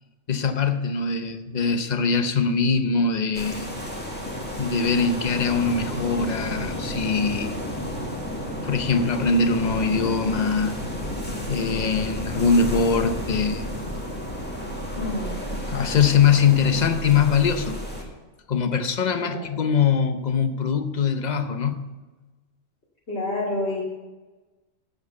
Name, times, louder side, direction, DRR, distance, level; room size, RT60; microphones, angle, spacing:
voice 1, 0.3-3.7 4.6-7.5 8.6-10.7 11.5-13.6 15.7-17.9 18.5-21.9, left 5 dB, 40° left, 9 dB, 0.8 m, -22 dB
sound 1, 3.3-18.0, equal, 10° left, 1.8 m, -32 dB
voice 2, 14.9-15.4 19.2-19.5 23.1-23.8, left 1 dB, 60° left, -7 dB, 2.5 m, -28 dB
8.0 x 7.8 x 8.0 m, 1.2 s
omnidirectional pair, 1.2 m